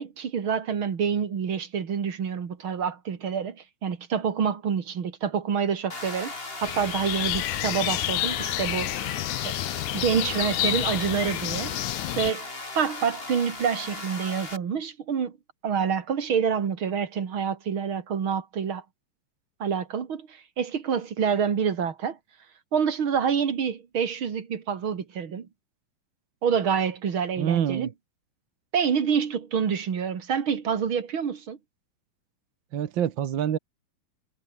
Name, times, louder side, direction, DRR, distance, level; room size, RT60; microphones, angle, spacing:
voice 1, 0.0-6.3 6.6-9.1 9.4-9.6 9.9-11.8 12.2-12.5 12.7-15.3 15.6-18.8 19.6-22.2 22.7-25.5 26.4-27.9 28.7-31.6, right 7 dB, 40° right, 2.5 m, -27 dB
sound 1, 5.9-14.6, left 2 dB, 15° left, 3.1 m, -38 dB
sound 2, 6.6-12.3, left 20 dB, 80° left, 1.7 m, -29 dB
voice 2, 27.4-27.9 32.7-33.6, right 9 dB, 70° right, 1.1 m, -26 dB
omnidirectional pair, 3.9 m